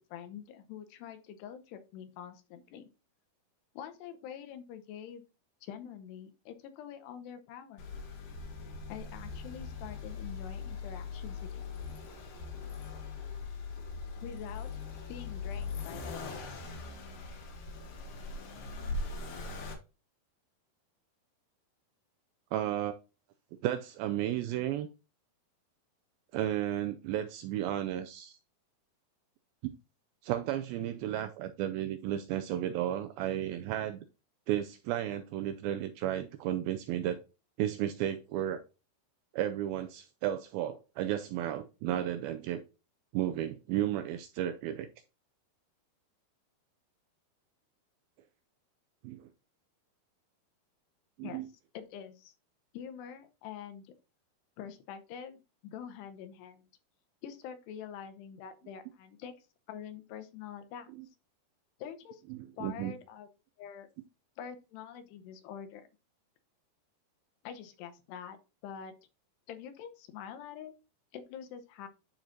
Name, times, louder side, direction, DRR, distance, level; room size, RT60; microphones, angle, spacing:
voice 1, 0.0-2.9 3.7-5.2 5.6-7.8 8.9-11.7 14.2-14.7 15.1-16.4 51.2-51.4 51.7-52.3 52.7-53.9 54.6-56.7 57.2-59.3 59.7-60.9 61.8-62.2 62.6-63.3 63.6-63.9 64.4-65.9 67.4-68.4 68.6-68.9 69.5-70.7 71.1-71.9, left 8 dB, 85° left, 8 dB, 2.9 m, -45 dB
Accelerating revving vroom, 7.8-19.7, left 4 dB, 65° left, 2.7 m, -40 dB
voice 2, 22.5-22.9 23.6-24.9 26.3-28.4 30.2-34.1 34.5-37.2 37.6-38.6 39.3-42.6 43.1-44.9 49.0-49.2 51.2-51.5 61.0-61.1 62.3-62.9, right 12 dB, 85° right, 9 dB, 2.2 m, -33 dB
11.5 x 4.4 x 2.6 m, 0.30 s
omnidirectional pair, 4.7 m